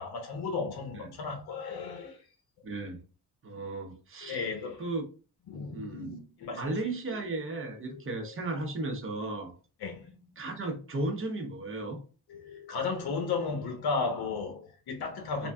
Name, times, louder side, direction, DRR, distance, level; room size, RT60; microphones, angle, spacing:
voice 1, 0.0-2.2 4.2-4.8 5.5-6.7 7.9-8.3 9.8-10.1 12.3-15.5, left 4 dB, 70° left, 0.9 m, -34 dB
voice 2, 2.6-3.0 3.4-4.4 4.8-5.0 5.6-6.1 6.5-9.5 10.4-12.0 15.4-15.5, right 2 dB, 30° right, 0.8 m, -35 dB
3.4 x 2.4 x 2.2 m
cardioid pair, 105°, 40 cm